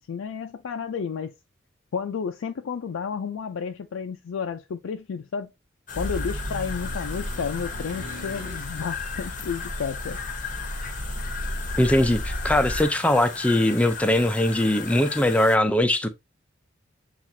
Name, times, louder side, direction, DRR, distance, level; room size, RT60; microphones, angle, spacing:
voice 1, 0.0-1.3 1.9-5.5 5.9-10.2, left 6 dB, 80° left, 0.4 m, -31 dB
sound 1, 5.9-15.6, left 6 dB, 40° left, 0.7 m, -36 dB
sound 2, 5.9-12.8, equal, 75° right, 1.3 m, -34 dB
voice 2, 11.8-16.1, left 1 dB, 5° left, 0.4 m, -21 dB
7.3 x 2.4 x 2.6 m
head